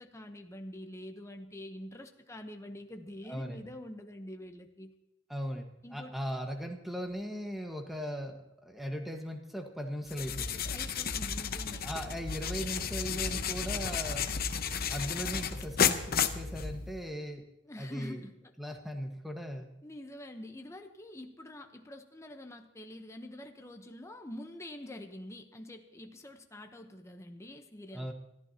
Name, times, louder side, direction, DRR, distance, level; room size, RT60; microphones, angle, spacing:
voice 1, 0.0-4.9 5.8-6.1 10.6-11.9 17.6-18.3 19.8-28.1, left 1 dB, 15° left, 5 dB, 0.9 m, -46 dB
voice 2, 3.3-3.6 5.3-10.6 11.8-14.3 14.9-17.4 17.8-18.2 18.6-19.7 27.9-28.1, equal, ahead, 3 dB, 1.5 m, -38 dB
sound 1, 10.1-17.1, left 7 dB, 50° left, 0.8 m, -33 dB
25.0 x 14.0 x 2.9 m, 0.84 s
head